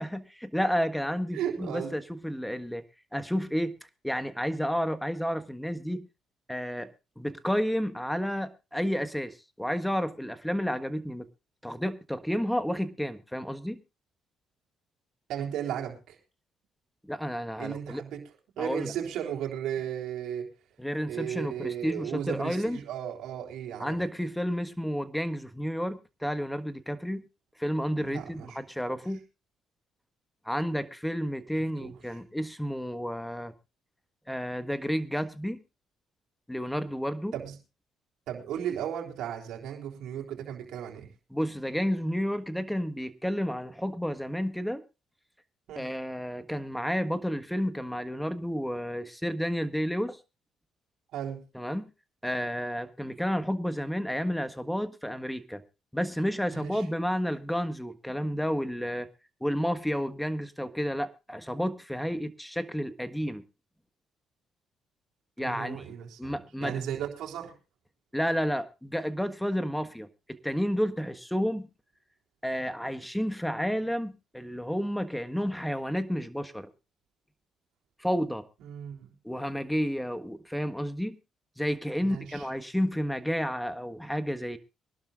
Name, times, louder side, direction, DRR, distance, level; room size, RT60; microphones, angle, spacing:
voice 1, 0.0-2.8 3.1-3.8 4.0-6.1 6.5-6.9 7.2-11.3 11.6-13.8 17.0-18.0 18.6-18.9 20.8-22.8 23.8-27.3 27.6-29.2 30.4-33.5 34.3-35.6 36.5-37.3 41.3-44.8 45.7-50.2 51.5-51.9 52.2-55.6 55.9-59.1 59.4-63.4 65.4-65.9 66.2-66.8 68.1-71.7 72.4-76.7 78.0-78.5 79.2-81.2 81.6-84.6, equal, 5° left, 1.5 m, -31 dB
voice 2, 1.3-1.9 15.3-16.2 17.6-18.2 18.6-20.5 21.1-24.0 28.0-28.6 31.8-31.9 37.3-37.5 38.3-41.1 45.7-45.9 51.1-51.4 56.5-56.8 65.4-67.5 78.6-79.1 82.0-82.5, right 9 dB, 80° right, 3.6 m, -35 dB
23.5 x 12.0 x 2.5 m
supercardioid pair, 65°, 0 cm